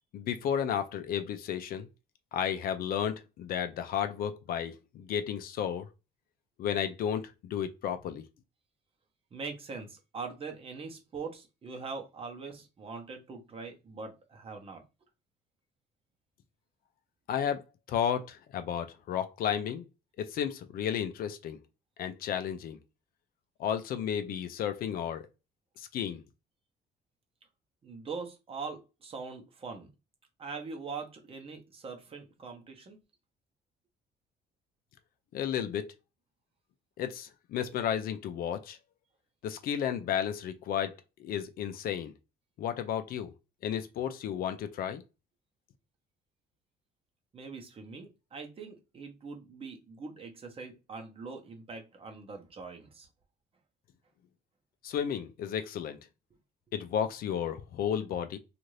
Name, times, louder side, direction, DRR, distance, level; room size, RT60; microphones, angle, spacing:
voice 1, 0.1-1.9 2.3-5.9 6.6-8.2 17.3-17.6 17.9-19.8 20.2-21.6 22.0-22.8 23.6-25.2 25.8-26.2 35.3-35.9 37.0-38.8 39.4-40.9 41.2-42.1 42.6-43.3 43.6-45.0 54.8-56.0 56.7-58.4, left 9 dB, 60° left, 0.4 m, -33 dB
voice 2, 9.3-14.8 27.8-29.9 30.4-33.0 47.3-53.1, right 4 dB, 35° right, 0.8 m, -42 dB
2.6 x 2.5 x 3.1 m
cardioid pair, 110°, 17 cm